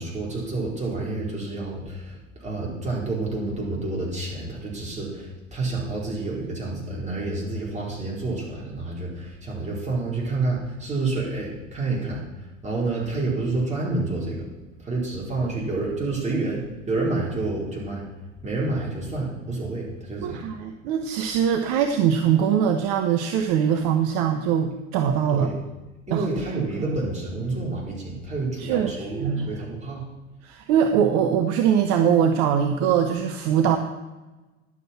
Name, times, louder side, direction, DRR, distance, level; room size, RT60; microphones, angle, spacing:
voice 1, 0.0-12.2 12.6-14.4 14.8-18.0 18.4-20.5 25.3-25.5 26.1-30.1, right 3 dB, 15° right, -4 dB, 4.3 m, -29 dB
voice 2, 20.2-25.5 26.1-26.3 26.8-27.0 28.6-29.6 30.4-33.8, right 8 dB, 50° right, 6 dB, 0.9 m, -22 dB
11.0 x 7.3 x 5.9 m, 1.1 s
figure-of-eight pair, 80°, 39 cm